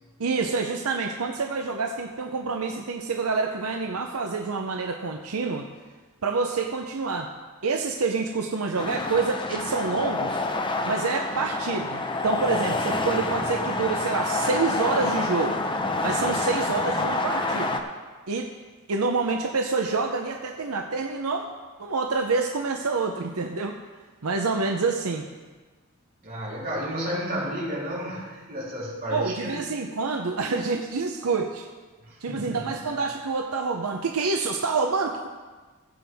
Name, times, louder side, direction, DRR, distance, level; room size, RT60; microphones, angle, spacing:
voice 1, 0.2-5.7 6.2-7.3 7.6-10.4 10.8-15.6 16.0-17.8 18.3-18.5 18.9-21.5 21.8-23.8 24.2-25.3 29.1-31.7 32.2-35.3, right 4 dB, 85° right, 3 dB, 0.7 m, -27 dB
sound 1, 8.8-17.8, left 2 dB, 20° left, 0.7 m, -27 dB
voice 2, 26.2-29.6 32.0-32.8, equal, 45° right, -7 dB, 3.7 m, -32 dB
16.5 x 7.8 x 3.5 m, 1.4 s
head